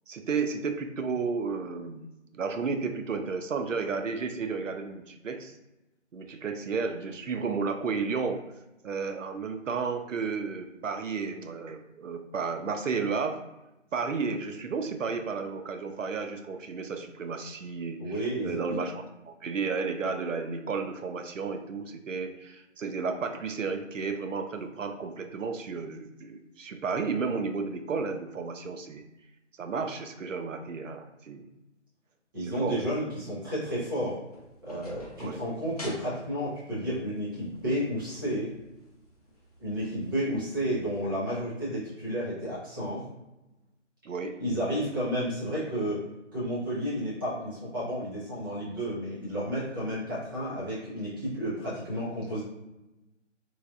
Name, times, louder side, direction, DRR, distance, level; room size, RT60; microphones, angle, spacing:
voice 1, 0.1-5.6 6.1-8.4 8.8-13.4 13.9-29.0 29.6-31.5 32.4-32.8 35.2-35.4 44.1-44.4, right 5 dB, 80° right, 6 dB, 0.5 m, -32 dB
voice 2, 18.0-18.8 32.3-34.2 34.6-38.5 39.6-43.0 44.4-46.0 46.3-52.4, equal, 20° right, -9 dB, 0.8 m, -31 dB
sound 1, 34.1-41.0, equal, 30° left, 0.5 m, -50 dB
3.2 x 2.4 x 2.3 m, 0.97 s
figure-of-eight pair, 150°, 37 cm